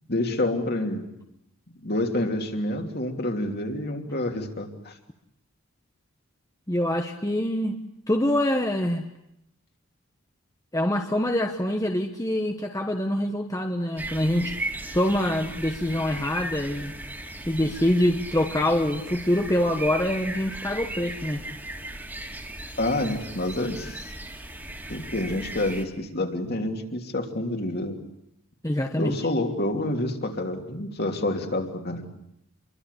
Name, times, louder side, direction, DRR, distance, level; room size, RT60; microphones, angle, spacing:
voice 1, 0.1-1.1 1.8-4.9 22.8-24.1 24.9-28.0 28.9-32.1, left 1 dB, 50° left, 3 dB, 3.0 m, -28 dB
voice 2, 6.7-7.8 8.1-9.1 10.7-14.6 14.9-16.9 17.5-21.6 28.6-29.2, left 1 dB, 15° left, 4 dB, 1.2 m, -25 dB
sound 1, 14.0-25.8, right 1 dB, 10° right, 2.6 m, -37 dB
27.5 x 23.0 x 8.3 m, 0.78 s
head